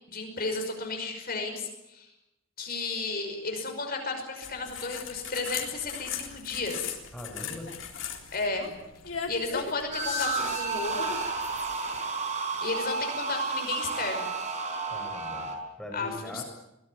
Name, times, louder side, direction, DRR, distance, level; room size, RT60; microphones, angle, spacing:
voice 1, 0.1-2.1 2.6-7.0 8.3-8.7 9.3-11.2 12.6-14.3 15.9-16.4, left 3 dB, 50° left, 4 dB, 5.6 m, -33 dB
sound 1, 4.4-11.7, left 7 dB, 70° left, 3.8 m, -39 dB
voice 2, 7.1-7.7 14.8-16.4, left 1 dB, ahead, 1 dB, 5.0 m, -41 dB
sound 2, 9.9-15.6, right 3 dB, 35° right, 5.0 m, -31 dB
23.5 x 18.5 x 9.6 m, 0.91 s
head